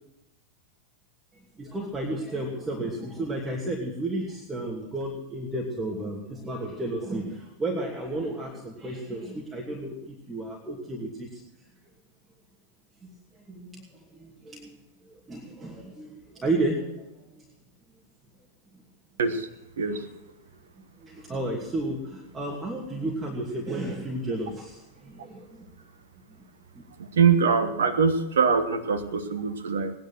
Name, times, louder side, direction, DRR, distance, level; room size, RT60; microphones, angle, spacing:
voice 1, 1.3-11.4 13.0-14.8 15.0-17.5 19.8-20.1 21.0-25.6 26.7-26.8, right 2 dB, 15° right, -2 dB, 2.7 m, -33 dB
voice 2, 27.2-29.9, right 5 dB, 65° right, 10 dB, 1.4 m, -23 dB
19.0 x 10.5 x 6.2 m, 0.91 s
figure-of-eight pair, 90°, 0 cm